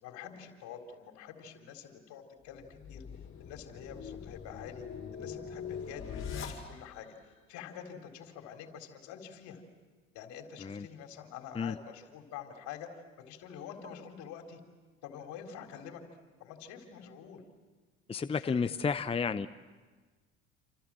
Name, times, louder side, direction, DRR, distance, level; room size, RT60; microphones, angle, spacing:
voice 1, 0.0-3.0 3.4-4.8 5.1-9.6 10.1-14.6 15.0-16.0 16.4-17.4 18.4-18.7, left 8 dB, 65° left, 4 dB, 4.0 m, -47 dB
sound 1, 2.5-7.1, left 7 dB, 40° left, 5.7 m, -42 dB
voice 2, 18.1-19.5, left 5 dB, 20° left, 12 dB, 0.8 m, -31 dB
28.5 x 27.5 x 7.6 m, 1.4 s
hypercardioid pair, 75°, 31 cm